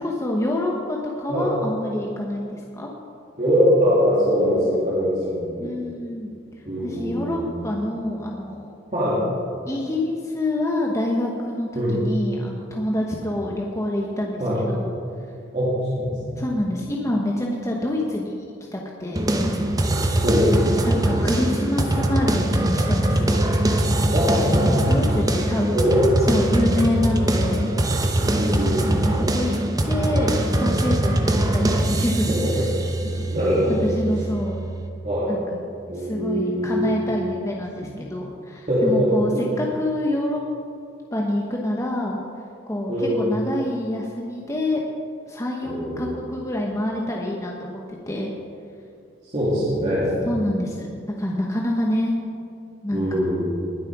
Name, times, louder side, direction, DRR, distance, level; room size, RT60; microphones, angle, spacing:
voice 1, 0.0-2.9 4.6-4.7 5.6-6.3 6.8-8.7 9.7-14.9 16.4-18.4 18.7-19.3 20.8-23.3 24.9-25.7 26.2-27.7 28.8-29.5 29.8-32.3 33.7-34.6 35.3-35.4 36.0-40.4 41.1-42.2 42.7-44.8 45.3-48.3 50.2-50.9 51.2-52.1 52.8-53.3, left 1 dB, 15° left, -1 dB, 1.0 m, -26 dB
voice 2, 3.4-5.7 6.7-7.5 8.9-9.2 11.7-12.0 14.4-14.6 15.5-16.4 20.2-20.5 20.9-21.3 24.1-24.8 25.5-26.0 28.2-28.9 32.3-32.6 32.9-33.8 35.0-35.4 35.9-36.9 37.8-37.9 38.7-39.5 42.9-43.4 45.6-46.0 49.3-50.1 52.9-53.5, equal, 40° right, -9 dB, 2.8 m, -22 dB
sound 1, 19.2-34.9, right 1 dB, 20° right, 0.9 m, -22 dB
20.0 x 7.6 x 4.8 m, 2.4 s
head